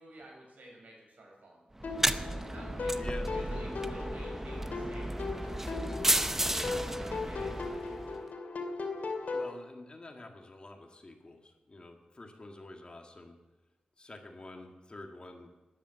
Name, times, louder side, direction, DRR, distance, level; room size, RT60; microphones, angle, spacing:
voice 1, 0.0-1.8 2.5-5.3 6.1-8.2, right 1 dB, 80° right, 0 dB, 6.2 m, -52 dB
sound 1, 1.8-9.5, left 3 dB, 90° left, 2.4 m, -38 dB
sound 2, 1.8-8.2, right 1 dB, 15° right, 0.6 m, -33 dB
voice 2, 3.0-3.4 6.0-6.2 9.3-13.4 14.0-15.5, left 2 dB, 40° left, 3 dB, 2.0 m, -48 dB
13.5 x 11.0 x 7.5 m, 1.1 s
wide cardioid pair, 125°, 3 cm